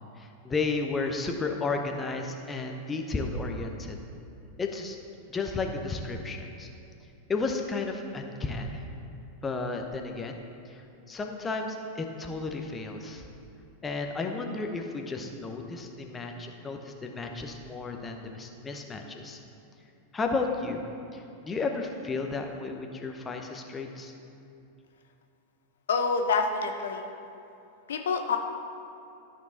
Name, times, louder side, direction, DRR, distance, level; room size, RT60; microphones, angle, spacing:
voice 1, 0.2-4.0 4.6-5.0 5.3-6.7 7.3-8.8 9.4-10.4 10.7-13.3 13.8-19.4 20.1-20.8 21.1-24.1, left 3 dB, 15° left, 3 dB, 0.8 m, -33 dB
voice 2, 25.9-27.1 27.9-28.4, left 4 dB, 65° left, 4 dB, 0.5 m, -27 dB
13.0 x 4.6 x 4.1 m, 2.7 s
figure-of-eight pair, 90°, 0 cm